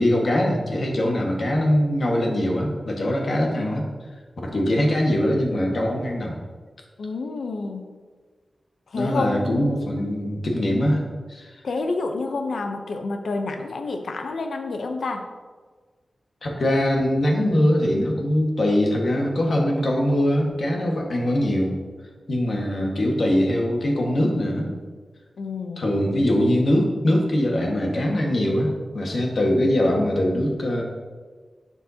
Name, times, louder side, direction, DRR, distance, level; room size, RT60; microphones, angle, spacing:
voice 1, 0.0-3.9 4.4-6.4 8.9-11.6 16.4-21.7 22.3-24.7 25.8-30.8, left 1 dB, 60° left, 0 dB, 1.6 m, -22 dB
voice 2, 7.0-7.8 8.9-9.7 11.6-15.2 25.4-25.9, left 3 dB, 90° left, 5 dB, 0.7 m, -28 dB
11.0 x 7.3 x 2.8 m, 1.5 s
wide cardioid pair, 115°, 0 cm